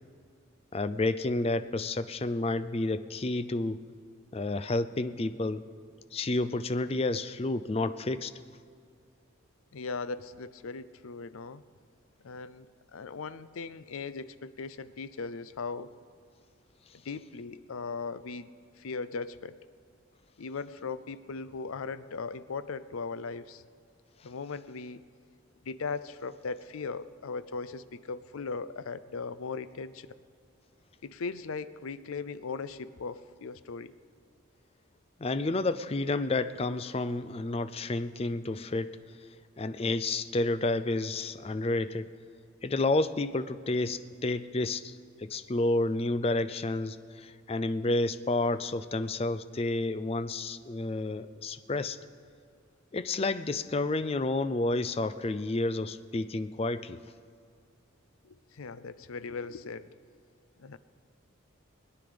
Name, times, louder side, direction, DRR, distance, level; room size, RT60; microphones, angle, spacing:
voice 1, 0.7-3.8 4.3-5.6 6.1-8.3 35.2-39.0 39.6-42.1 42.6-52.0 52.9-57.0, left 2 dB, 30° left, 12 dB, 0.4 m, -30 dB
voice 2, 9.7-11.6 12.2-12.7 12.9-15.9 17.1-18.5 18.8-19.6 20.4-23.6 24.2-25.0 25.6-30.1 31.0-33.9 58.2-59.9 60.6-60.8, left 4 dB, 80° left, 15 dB, 0.5 m, -38 dB
21.5 x 9.8 x 5.1 m, 2.3 s
head